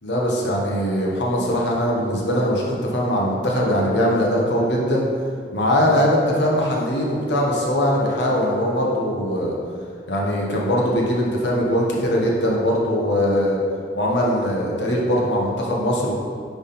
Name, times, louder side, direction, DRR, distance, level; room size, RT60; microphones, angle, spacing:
voice 1, 0.0-5.0 5.5-9.6 10.1-13.6 13.9-16.1, equal, 70° left, -3 dB, 1.3 m, -21 dB
9.6 x 3.6 x 4.3 m, 2.2 s
head